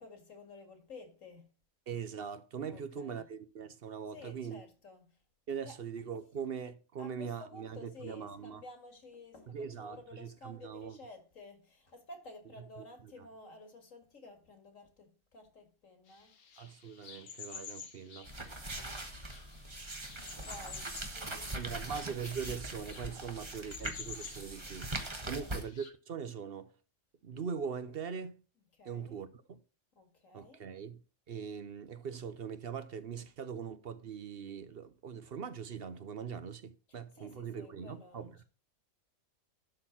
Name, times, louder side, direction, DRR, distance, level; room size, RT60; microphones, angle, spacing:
voice 1, 0.0-1.5 2.7-3.3 4.1-5.2 5.7-5.8 7.0-16.4 18.6-18.7 20.2-21.9 25.2-25.5 28.8-29.2 29.9-30.7 36.9-38.4, left 2 dB, 65° left, 2.4 m, -53 dB
voice 2, 1.9-4.6 5.5-8.6 9.5-11.0 12.8-12.9 16.6-18.3 21.5-24.9 25.2-26.7 27.2-28.4 28.8-29.6 30.3-31.0 31.3-38.4, right 7 dB, 50° right, 0.8 m, -41 dB
sound 1, 16.1-25.9, left 6 dB, 90° left, 1.7 m, -51 dB
sound 2, 18.2-25.6, right 2 dB, 20° right, 1.2 m, -41 dB
12.0 x 4.4 x 5.6 m
omnidirectional pair, 1.5 m